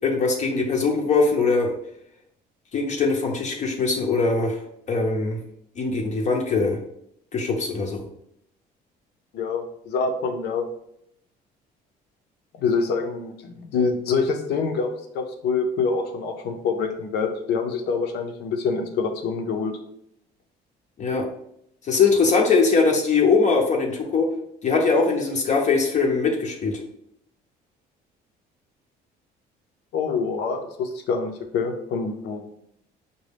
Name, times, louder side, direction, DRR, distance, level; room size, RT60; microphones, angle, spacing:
voice 1, 0.0-1.7 2.7-4.6 4.9-5.4 5.8-6.8 7.3-8.0 21.0-21.3 21.9-24.3 24.6-26.8, left 4 dB, 45° left, 1 dB, 0.6 m, -21 dB
voice 2, 9.3-10.6 12.5-19.8 29.9-32.5, left 5 dB, 80° left, 5 dB, 0.7 m, -26 dB
5.2 x 2.2 x 3.3 m, 0.75 s
cardioid pair, 110°, 17 cm